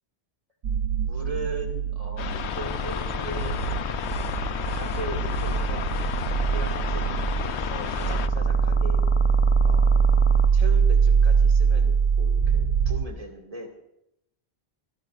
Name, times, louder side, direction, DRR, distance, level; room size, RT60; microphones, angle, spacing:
sound 1, 0.6-13.1, right 6 dB, 85° right, 0.9 m, -23 dB
voice 1, 1.0-3.6 4.3-5.9 6.3-9.1 9.6-10.1 10.5-13.7, right 2 dB, 35° right, 0 dB, 2.3 m, -39 dB
sound 2, 2.2-8.3, left 9 dB, 90° left, 0.9 m, -34 dB
sound 3, 2.3-10.5, left 3 dB, 35° left, 0.6 m, -32 dB
25.5 x 12.5 x 2.5 m, 0.81 s
omnidirectional pair, 1.1 m